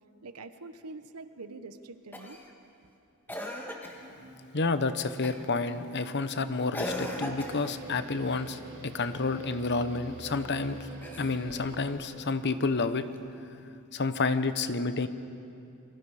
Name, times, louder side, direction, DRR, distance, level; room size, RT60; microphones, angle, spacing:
voice 1, 0.2-2.4, right 3 dB, 90° right, 10 dB, 1.0 m, -44 dB
Cough, 2.1-2.5 3.3-4.1 5.2-5.6 6.7-7.8 10.9-11.7 13.2-13.3, left 1 dB, 10° left, 1.7 m, -38 dB
sound 1, 4.0-13.1, equal, 10° right, 6.3 m, -54 dB
voice 2, 4.5-10.8 11.2-13.1 13.9-15.1, left 3 dB, 50° left, 11 dB, 0.9 m, -30 dB
sound 2, 6.8-11.8, right 3 dB, 30° right, 4.8 m, -46 dB
28.0 x 23.5 x 4.9 m, 2.7 s
head